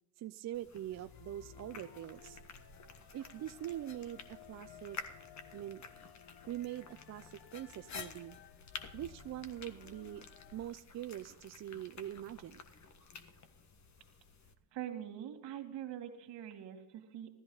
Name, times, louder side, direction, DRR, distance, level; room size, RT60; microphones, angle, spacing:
voice 1, 0.2-2.4 3.1-5.0 5.5-5.8 6.5-8.4 8.9-10.2 10.5-12.6, right 12 dB, 40° right, 11 dB, 0.5 m, -43 dB
sound 1, 0.5-14.5, left 5 dB, 40° left, 1.6 m, -52 dB
sound 2, 0.9-10.7, left 8 dB, 60° left, 1.1 m, -57 dB
voice 2, 14.7-17.3, right 10 dB, 75° right, 4 dB, 2.4 m, -44 dB
15.5 x 13.5 x 4.0 m, 0.88 s
cardioid pair, 95°, 43 cm